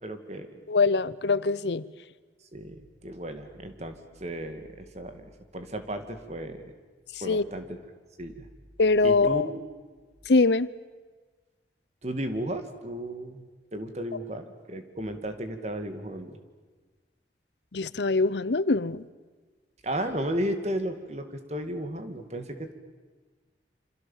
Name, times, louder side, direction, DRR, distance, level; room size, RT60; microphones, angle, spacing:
voice 1, 0.0-0.6 2.5-6.6 7.2-7.8 8.2-8.5 9.0-9.6 12.0-13.5 13.7-16.4 19.8-22.7, right 1 dB, 40° right, 7 dB, 2.4 m, -34 dB
voice 2, 0.7-1.8 7.3-7.4 8.8-9.5 10.3-10.7 17.7-19.0, left 3 dB, 80° left, 18 dB, 0.8 m, -23 dB
28.0 x 26.5 x 7.4 m, 1.4 s
head